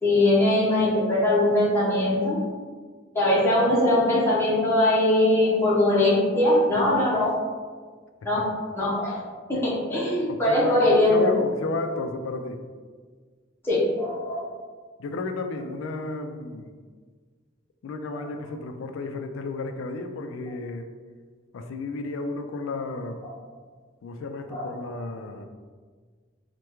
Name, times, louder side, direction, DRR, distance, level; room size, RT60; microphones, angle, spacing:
voice 1, 0.0-2.4 3.1-7.4 8.2-8.4 8.7-9.2 9.5-11.3 13.6-14.4 18.2-18.3 24.5-24.7, left 1 dB, 10° left, -9 dB, 0.7 m, -21 dB
voice 2, 10.3-12.6 15.0-16.7 17.8-20.9 21.5-23.3 24.0-25.5, left 3 dB, 75° left, 6 dB, 0.3 m, -33 dB
3.4 x 2.2 x 2.9 m, 1.5 s
head